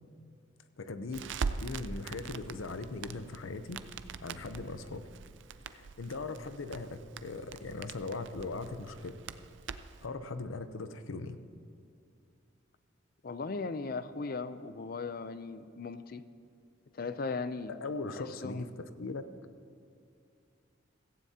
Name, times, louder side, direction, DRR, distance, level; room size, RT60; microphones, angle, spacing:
voice 1, 0.8-3.8 4.2-5.0 5.7-9.2 10.0-11.4 17.7-19.2, left 3 dB, 85° left, 10 dB, 0.7 m, -39 dB
Crackle, 1.1-10.1, right 5 dB, 65° right, 0.4 m, -42 dB
voice 2, 13.2-16.2 16.9-17.7 18.0-18.7, left 4 dB, 45° left, 13 dB, 0.5 m, -38 dB
16.5 x 15.0 x 2.8 m, 2.6 s
head